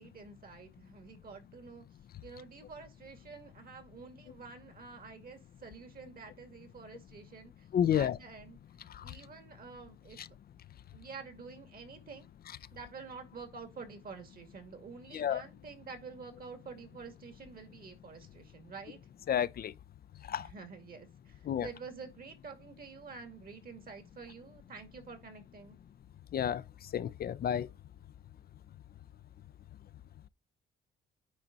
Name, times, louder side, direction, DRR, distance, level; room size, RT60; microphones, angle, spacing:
voice 1, 0.0-1.8 2.2-8.6 9.0-10.2 10.9-12.3 12.7-19.0 20.4-25.8, right 5 dB, 50° right, 2.4 m, -49 dB
voice 2, 7.7-8.2 8.9-9.1 10.2-10.3 15.1-15.4 19.3-19.7 20.2-20.5 21.5-21.7 26.3-27.7, left 9 dB, 50° left, 0.5 m, -31 dB
9.6 x 4.1 x 4.0 m
cardioid pair, 90°, 20 cm